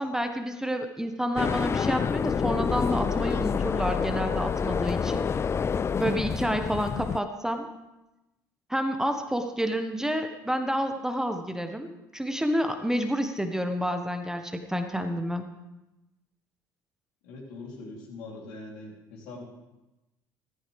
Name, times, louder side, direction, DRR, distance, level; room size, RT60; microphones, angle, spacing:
voice 1, 0.0-5.3 6.0-7.7 8.7-15.4, equal, 5° right, 6 dB, 1.2 m, -29 dB
sound 1, 1.4-7.2, left 6 dB, 25° left, 0.3 m, -28 dB
voice 2, 17.2-19.5, left 2 dB, 70° left, -2 dB, 3.5 m, -42 dB
14.5 x 14.0 x 3.5 m, 1.0 s
hypercardioid pair, 65°, 10 cm